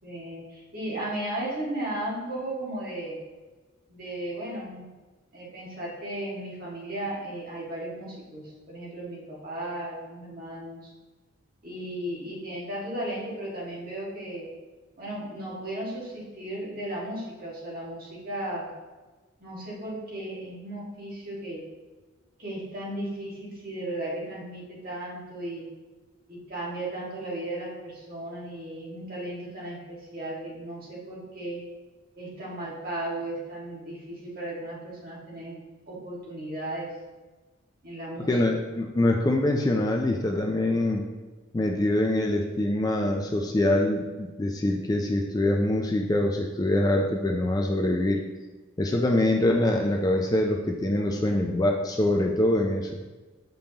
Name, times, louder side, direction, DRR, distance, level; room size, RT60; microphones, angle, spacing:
voice 1, 0.0-3.2 3.9-4.9 5.3-10.9 11.6-14.5 15.0-18.7 19.4-21.6 22.4-25.7 26.3-31.6 32.2-36.9 37.8-38.4, right 1 dB, 45° right, -5 dB, 1.6 m, -35 dB
voice 2, 38.3-41.0 41.5-48.2 48.8-52.9, left 1 dB, 20° left, 2 dB, 0.3 m, -24 dB
6.8 x 5.3 x 2.8 m, 1.3 s
head